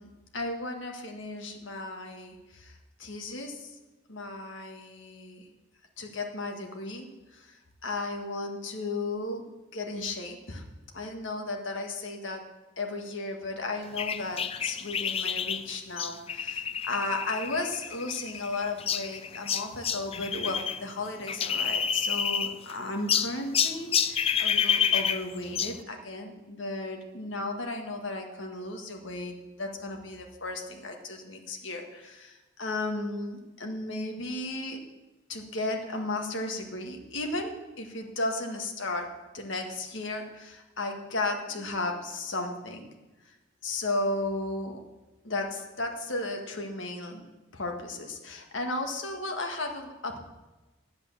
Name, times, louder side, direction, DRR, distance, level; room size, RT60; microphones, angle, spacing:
voice 1, 0.0-3.7 4.1-5.5 6.0-7.1 7.3-7.6 7.8-9.4 9.7-12.4 12.8-34.8 35.3-42.9 43.6-44.8 45.2-47.2 47.5-50.2, left 2 dB, 80° left, 3 dB, 1.8 m, -35 dB
sound 1, 14.0-20.8 21.1-22.7 23.1-25.8, left 7 dB, 30° left, 0.5 m, -29 dB
10.0 x 8.6 x 7.2 m, 1.1 s
head